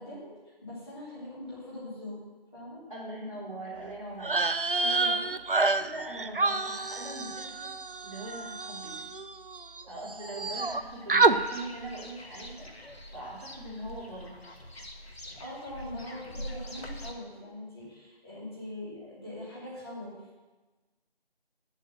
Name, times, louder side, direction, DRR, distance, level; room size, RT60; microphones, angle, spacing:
voice 1, 0.0-2.2 2.5-2.8 4.7-5.3 15.2-20.1, left 1 dB, 25° left, -10 dB, 2.9 m, -42 dB
voice 2, 2.9-4.5 5.8-7.7 8.0-9.0 9.9-12.7 13.1-14.6, right 2 dB, 35° right, -7 dB, 3.1 m, -41 dB
sound 1, 4.2-9.8 10.1-10.8 11.1-11.4, right 3 dB, 60° right, 0.6 m, -28 dB
sound 2, 10.5-17.1, left 1 dB, 80° left, 1.5 m, -44 dB
9.1 x 7.2 x 7.5 m, 1.2 s
figure-of-eight pair, 170°, 31 cm